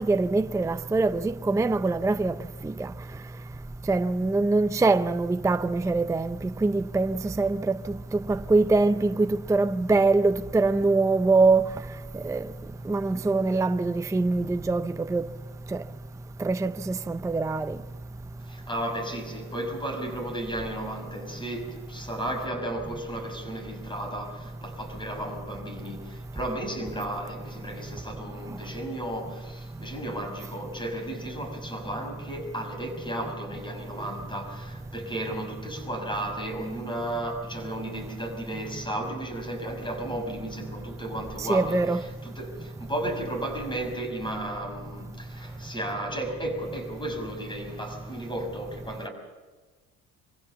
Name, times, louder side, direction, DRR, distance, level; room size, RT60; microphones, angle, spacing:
voice 1, 0.0-2.4 2.6-2.9 3.9-7.8 8.3-11.7 12.2-12.4 12.9-15.2 16.4-17.8 41.5-42.0, right 3 dB, 10° right, 0.6 m, -23 dB
voice 2, 18.4-49.1, right 1 dB, 15° left, 6.1 m, -34 dB
24.5 x 16.0 x 7.3 m
cardioid pair, 95°, 33 cm